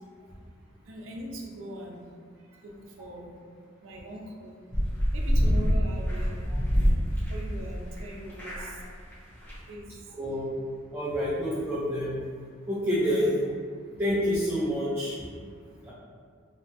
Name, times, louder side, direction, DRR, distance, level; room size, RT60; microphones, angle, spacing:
voice 1, 0.9-2.2 2.6-3.4 3.8-4.6 5.1-6.4 7.3-8.7 9.7-9.9 13.1-13.2 15.8-15.9, equal, 80° right, 0 dB, 0.4 m, -41 dB
sound 1, 4.7-8.0 8.3-8.8 9.1-9.2 9.4-9.6, equal, 10° left, 0.8 m, -25 dB
voice 2, 10.1-10.5 10.9-12.2 12.7-13.4 14.0-15.2 15.8-15.9, equal, 10° right, -9 dB, 0.3 m, -27 dB
2.7 x 2.2 x 2.7 m, 2.1 s
head